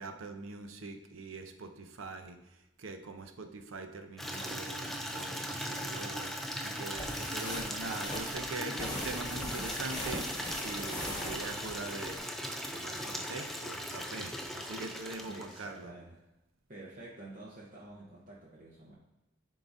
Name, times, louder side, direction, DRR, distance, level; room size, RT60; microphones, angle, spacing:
voice 1, 0.0-2.4 2.8-6.3 6.6-12.2 12.7-15.9, right 3 dB, 85° right, 6 dB, 0.6 m, -43 dB
Water tap faucet / Liquid, 4.2-15.8, equal, ahead, 0.3 m, -39 dB
sound 1, 6.8-12.2, left 1 dB, 20° left, 1.1 m, -41 dB
voice 2, 15.2-16.2 16.7-18.9, right 2 dB, 40° right, -5 dB, 0.7 m, -49 dB
10.5 x 3.9 x 2.5 m, 0.96 s
head